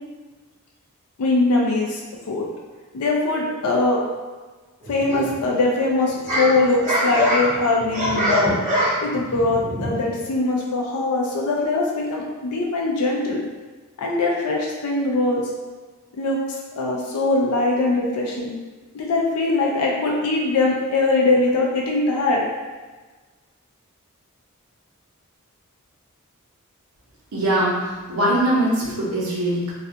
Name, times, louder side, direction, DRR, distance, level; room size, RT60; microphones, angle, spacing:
voice 1, 1.2-2.0 2.3-2.5 2.9-4.0 4.9-8.5 9.0-13.4 14.0-15.5 16.2-18.5 18.9-22.4, left 2 dB, 90° left, -2 dB, 0.4 m, -21 dB
sound 1, 4.8-5.6 6.0-10.3, equal, 35° right, 0.6 m, -24 dB
voice 2, 27.3-29.7, right 1 dB, 80° right, -6 dB, 0.8 m, -22 dB
2.4 x 2.2 x 2.7 m, 1.3 s
head